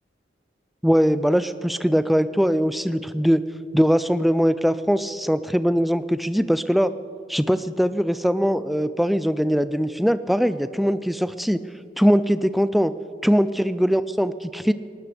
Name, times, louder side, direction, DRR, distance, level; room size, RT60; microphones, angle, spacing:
voice 1, 0.8-3.4 3.7-6.9 7.3-11.6 12.0-12.9 13.2-14.7, equal, ahead, 13 dB, 0.3 m, -21 dB
20.5 x 18.5 x 3.4 m, 2.5 s
head